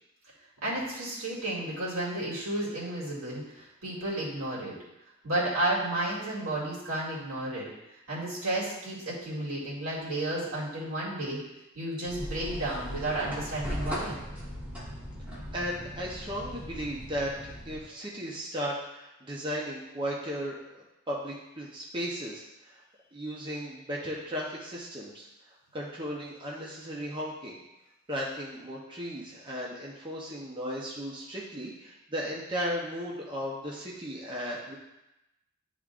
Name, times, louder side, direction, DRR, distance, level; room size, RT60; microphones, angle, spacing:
voice 1, 0.6-4.7 5.2-7.7 8.1-11.4 11.7-14.2, right 1 dB, 80° right, -7 dB, 2.2 m, -32 dB
sound 1, 12.0-17.8, equal, 5° right, 1.3 m, -38 dB
voice 2, 15.5-22.8 23.1-25.3 25.7-27.6 28.1-34.7, equal, 25° right, -4 dB, 0.8 m, -36 dB
10.5 x 3.6 x 2.5 m, 0.92 s
head